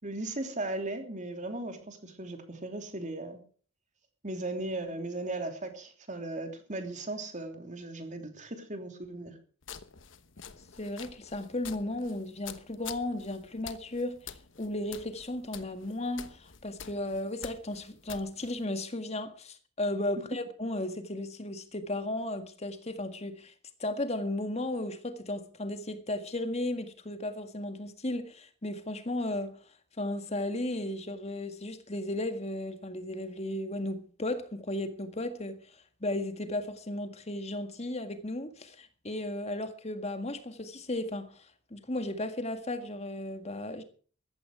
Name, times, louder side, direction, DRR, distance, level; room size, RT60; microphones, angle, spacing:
voice 1, 0.0-3.4 4.2-9.4, right 2 dB, 40° right, 3.0 m, -37 dB
sound 1, 9.6-18.6, left 7 dB, 70° left, 1.2 m, -48 dB
voice 2, 10.8-14.2 14.6-23.5 23.8-29.6 30.0-35.6 36.0-41.5 41.7-43.8, left 1 dB, 35° left, 1.8 m, -35 dB
14.5 x 13.5 x 4.8 m
head